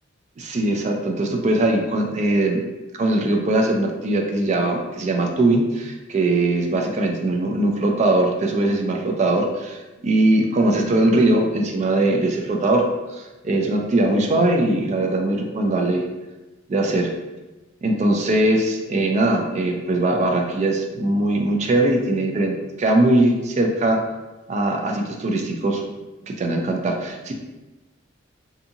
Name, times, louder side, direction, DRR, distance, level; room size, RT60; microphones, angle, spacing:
voice 1, 0.4-2.6 2.9-16.0 16.7-17.1 17.8-24.0 24.5-25.8 26.2-27.3, right 2 dB, 35° right, 2 dB, 0.3 m, -21 dB
2.7 x 2.5 x 2.6 m, 1.1 s
head